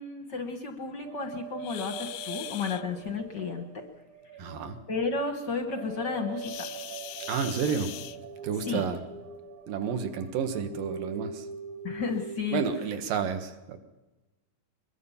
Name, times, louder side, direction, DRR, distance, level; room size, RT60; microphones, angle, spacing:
voice 1, 0.0-3.8 4.9-6.7 8.6-8.9 11.8-12.7, left 4 dB, 65° left, 5 dB, 1.0 m, -32 dB
sound 1, 1.0-12.8, right 6 dB, 60° right, 1.5 m, -42 dB
sound 2, 1.6-2.8 6.3-8.6 9.8-10.0 10.6-10.7 11.2-11.3 12.1-12.2 12.7-12.9, left 15 dB, 90° left, 2.6 m, -41 dB
voice 2, 4.4-4.8 7.3-7.9 8.4-9.0 9.7-11.5 12.5-13.8, right 6 dB, 75° right, 7 dB, 3.1 m, -30 dB
22.5 x 21.5 x 5.7 m, 1.1 s
omnidirectional pair, 4.0 m